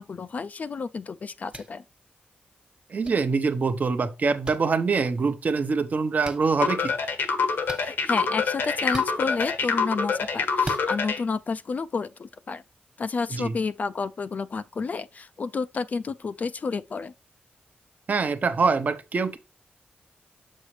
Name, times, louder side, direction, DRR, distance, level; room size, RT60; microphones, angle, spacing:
voice 1, 0.0-1.8 7.8-12.6 13.0-17.1, left 4 dB, 50° left, 0.3 m, -30 dB
sound 1, 1.5-1.7 3.0-3.1 4.4-4.6 6.2-6.4 7.6-7.9 8.9-9.1 10.6-10.8, right 2 dB, 25° right, 1.2 m, -36 dB
voice 2, 2.9-6.9 13.3-13.5 18.1-19.4, right 4 dB, 50° right, 0.8 m, -24 dB
sound 2, 6.6-11.2, left 5 dB, 90° left, 1.2 m, -25 dB
7.4 x 6.3 x 3.2 m
wide cardioid pair, 105°, 4 cm